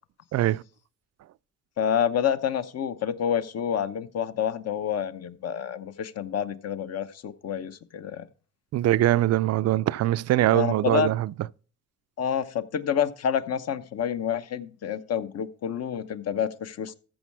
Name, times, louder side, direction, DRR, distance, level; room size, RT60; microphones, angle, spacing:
voice 1, 0.3-0.6 8.7-11.3, right 14 dB, 60° right, 0.4 m, -22 dB
voice 2, 1.8-8.3 10.5-11.1 12.2-16.9, left 8 dB, 55° left, 0.9 m, -28 dB
14.0 x 6.3 x 4.7 m
cardioid pair, 90°, 30 cm